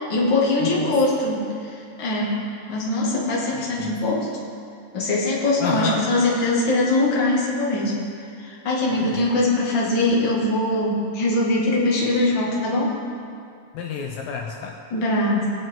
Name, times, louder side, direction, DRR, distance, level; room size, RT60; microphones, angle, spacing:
voice 1, 0.1-2.4 2.7-4.3 4.9-8.0 8.4-13.0 14.9-15.5, left 2 dB, 35° left, -5 dB, 2.0 m, -22 dB
voice 2, 0.6-1.0 3.5-3.9 5.6-6.1 8.9-9.3 13.7-14.8, left 6 dB, 85° left, 1 dB, 2.0 m, -30 dB
22.0 x 7.7 x 3.8 m, 2.4 s
omnidirectional pair, 5.1 m